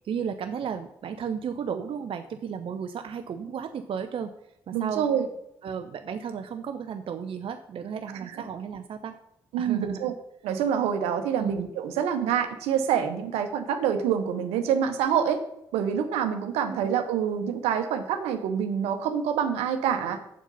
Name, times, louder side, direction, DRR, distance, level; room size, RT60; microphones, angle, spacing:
voice 1, 0.0-4.3 4.7-5.1 5.6-9.1 9.6-10.1 11.4-11.7 16.6-16.9, right 7 dB, 60° right, 8 dB, 0.7 m, -34 dB
voice 2, 4.7-5.3 9.5-10.1 10.4-15.4 15.7-20.2, right 8 dB, 80° right, 8 dB, 1.0 m, -26 dB
7.3 x 7.2 x 5.5 m, 0.81 s
hypercardioid pair, 40°, 10 cm